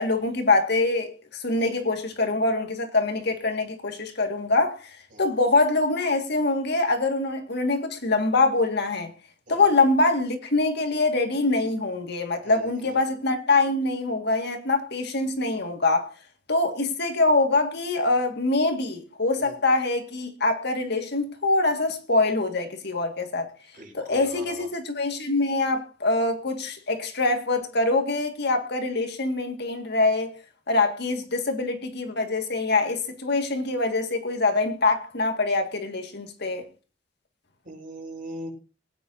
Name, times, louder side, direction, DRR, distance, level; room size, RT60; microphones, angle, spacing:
voice 1, 0.0-4.8 5.2-9.1 9.5-16.1 16.5-23.5 23.9-30.3 30.7-36.6, left 3 dB, 60° left, 2.0 m, -24 dB
voice 2, 12.4-13.0 19.4-19.5 23.7-24.7 37.6-38.5, right 1 dB, 45° right, 6.3 m, -41 dB
22.5 x 9.7 x 2.8 m
head